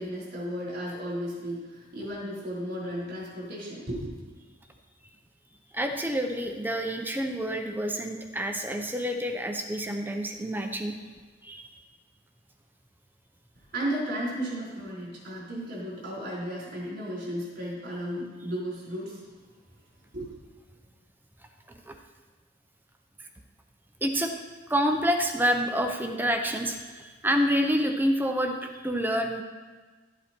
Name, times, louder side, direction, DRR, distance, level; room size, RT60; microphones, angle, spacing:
voice 1, 0.0-4.2 13.7-19.2 20.1-20.3, equal, 55° right, -5 dB, 4.1 m, -34 dB
voice 2, 5.7-11.0 11.4-11.7 21.9-22.0 23.2-23.3 24.0-24.3 24.7-29.4, equal, 10° right, 4 dB, 0.7 m, -28 dB
13.0 x 8.2 x 4.4 m, 1.4 s
head